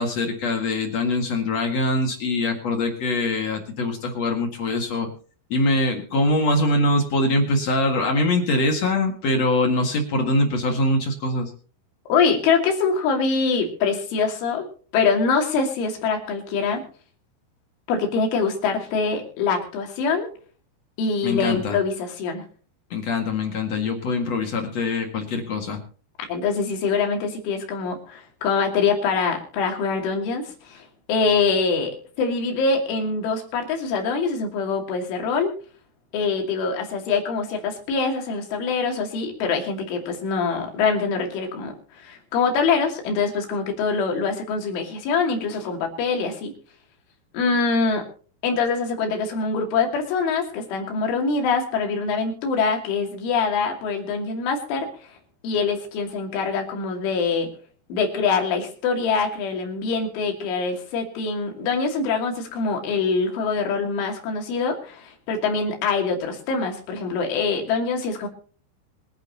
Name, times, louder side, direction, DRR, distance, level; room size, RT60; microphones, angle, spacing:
voice 1, 0.0-5.1 5.5-11.5 21.2-21.8 22.9-25.8, left 2 dB, 50° left, 3 dB, 2.1 m, -23 dB
voice 2, 12.1-14.7 14.9-16.8 17.9-20.3 21.0-22.4 26.3-35.5 36.1-46.5 47.3-48.0 48.4-55.1 55.4-57.5 57.9-68.3, left 5 dB, 85° left, 2 dB, 5.2 m, -24 dB
25.0 x 9.7 x 2.8 m, 0.41 s
omnidirectional pair, 5.4 m